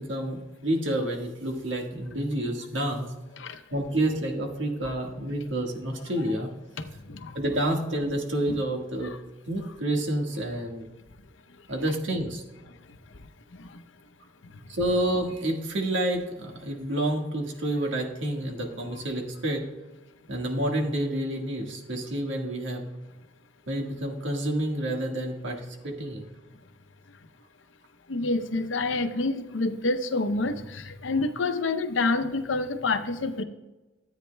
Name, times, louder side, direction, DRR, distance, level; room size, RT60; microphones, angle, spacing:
voice 1, 0.0-3.1 3.7-6.5 7.3-9.1 9.5-10.8 11.7-12.4 14.7-19.6 20.3-22.8 23.7-26.2, right 1 dB, 85° right, 2 dB, 1.6 m, -29 dB
voice 2, 6.8-7.4 8.5-8.6 9.0-9.2 13.6-13.7 28.1-33.4, left 3 dB, 90° left, 10 dB, 0.7 m, -28 dB
13.5 x 8.9 x 2.2 m, 1.1 s
head